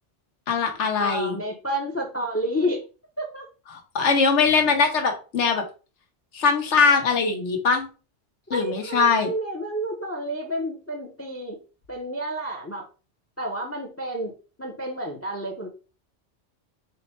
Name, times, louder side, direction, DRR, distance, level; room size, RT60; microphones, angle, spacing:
voice 1, 0.5-1.4 3.7-5.6 6.3-7.9 8.5-9.3, left 5 dB, 90° left, 5 dB, 1.2 m, -21 dB
voice 2, 1.0-2.8 3.2-3.5 6.9-7.0 8.5-11.6 11.9-12.9 13.4-14.3 14.6-15.7, equal, 20° left, 3 dB, 0.4 m, -30 dB
4.2 x 2.1 x 4.2 m, 0.34 s
omnidirectional pair, 1.2 m